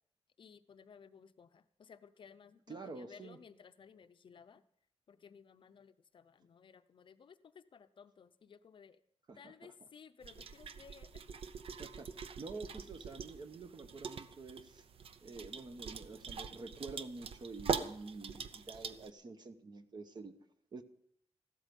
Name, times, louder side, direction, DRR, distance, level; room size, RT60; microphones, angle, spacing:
voice 1, 0.4-4.6 5.1-9.0 9.4-11.4, left 6 dB, 50° left, 11 dB, 0.6 m, -58 dB
voice 2, 2.7-3.4 9.3-9.5 11.8-14.8 15.2-20.3 20.7-20.8, right 3 dB, 40° right, 9 dB, 1.0 m, -48 dB
sound 1, 10.2-19.1, right 6 dB, 55° right, 0.7 m, -43 dB
15.0 x 12.5 x 5.3 m, 0.68 s
wide cardioid pair, 175°, 11 cm